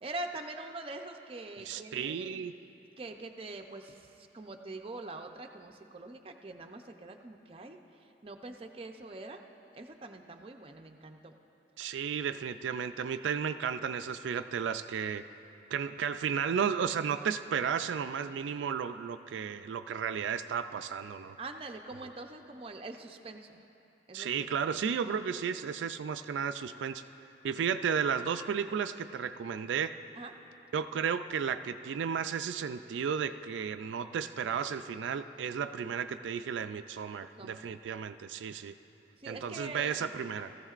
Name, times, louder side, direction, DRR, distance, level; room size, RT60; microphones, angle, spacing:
voice 1, 0.0-2.5 3.0-7.8 8.2-9.4 9.7-11.4 21.4-23.6 24.1-24.3 30.2-30.3 37.4-37.7 39.2-40.2, right 2 dB, 30° right, 4 dB, 0.5 m, -44 dB
voice 2, 1.6-2.5 11.8-15.2 15.7-21.4 24.1-27.0 27.4-29.9 30.7-38.7 39.3-40.5, right 7 dB, 90° right, 9 dB, 0.3 m, -33 dB
17.5 x 14.5 x 2.5 m, 2.9 s
head